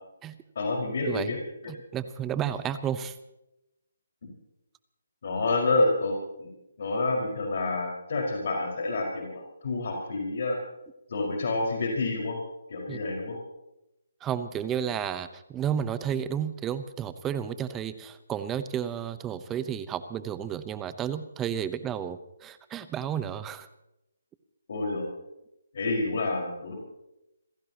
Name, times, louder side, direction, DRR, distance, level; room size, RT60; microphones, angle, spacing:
voice 1, 0.5-1.4 5.2-6.5 6.8-10.6 11.1-12.4 12.7-13.4 24.7-25.1 25.7-26.7, left 2 dB, 55° left, 0 dB, 5.0 m, -28 dB
voice 2, 1.7-3.2 12.9-13.0 14.2-23.7, right 9 dB, 15° right, 13 dB, 0.8 m, -32 dB
28.0 x 16.5 x 3.0 m, 0.88 s
hypercardioid pair, 155°, 0 cm